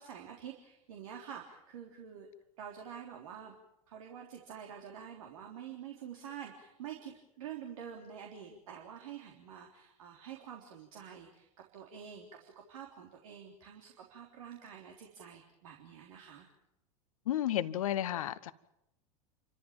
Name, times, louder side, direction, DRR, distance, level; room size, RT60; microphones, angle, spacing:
voice 1, 0.0-2.3 2.6-3.5 3.9-11.5 11.7-16.5, right 8 dB, 70° right, 3.5 m, -47 dB
voice 2, 17.2-18.5, left 12 dB, 70° left, 1.2 m, -32 dB
29.0 x 14.5 x 9.1 m
hypercardioid pair, 90°, 18 cm